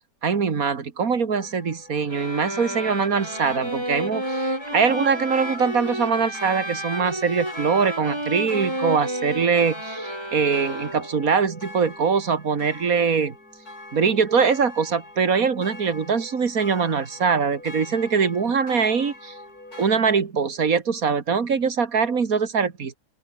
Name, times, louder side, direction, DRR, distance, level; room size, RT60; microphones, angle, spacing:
voice 1, 0.2-13.3 13.9-19.3 19.8-22.9, right 5 dB, 60° right, 2.4 m, -22 dB
sound 1, 1.4-19.9, left 2 dB, 70° left, 8.5 m, -42 dB
sound 2, 2.1-11.3, right 1 dB, 15° right, 6.2 m, -31 dB
open air
omnidirectional pair, 1.7 m